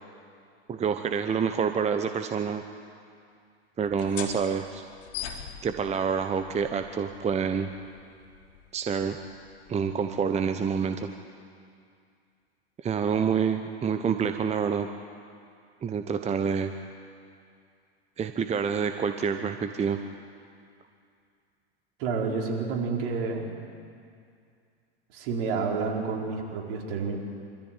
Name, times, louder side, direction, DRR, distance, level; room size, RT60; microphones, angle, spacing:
voice 1, 0.7-2.6 3.8-4.8 5.6-7.7 8.7-9.2 9.7-11.1 12.8-14.9 15.8-16.7 18.2-20.0, right 6 dB, 20° right, 7 dB, 0.9 m, -27 dB
sound 1, 3.8-11.1, left 9 dB, 60° left, 3.7 m, -44 dB
voice 2, 22.0-23.5 25.1-27.2, right 4 dB, 60° right, 0 dB, 4.3 m, -29 dB
25.0 x 14.0 x 9.0 m, 2.3 s
hypercardioid pair, 100°, 33 cm